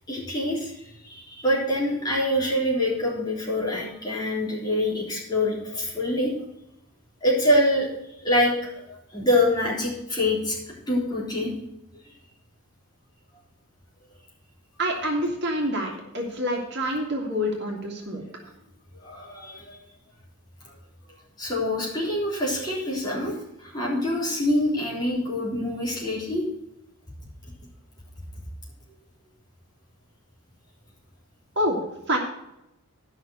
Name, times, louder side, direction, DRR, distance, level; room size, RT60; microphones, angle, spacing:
voice 1, 0.1-6.3 7.2-7.9 8.2-10.6 10.9-11.5 19.0-19.8 20.6-20.7 21.4-26.4, left 1 dB, 20° left, -4 dB, 3.6 m, -25 dB
voice 2, 14.8-18.2 31.6-31.8 32.1-32.2, equal, 50° right, 0 dB, 2.2 m, -27 dB
12.0 x 6.2 x 6.4 m, 0.85 s
head